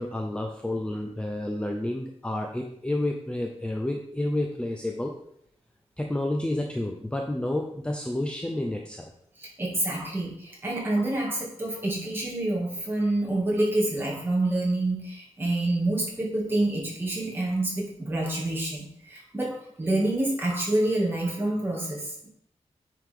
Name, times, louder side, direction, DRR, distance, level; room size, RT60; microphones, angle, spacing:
voice 1, 0.0-5.2 6.0-9.1, left 1 dB, 10° left, 2 dB, 0.6 m, -30 dB
voice 2, 9.4-22.3, right 1 dB, 20° right, -3 dB, 2.2 m, -27 dB
9.3 x 5.0 x 3.7 m, 0.70 s
wide cardioid pair, 145°, 12 cm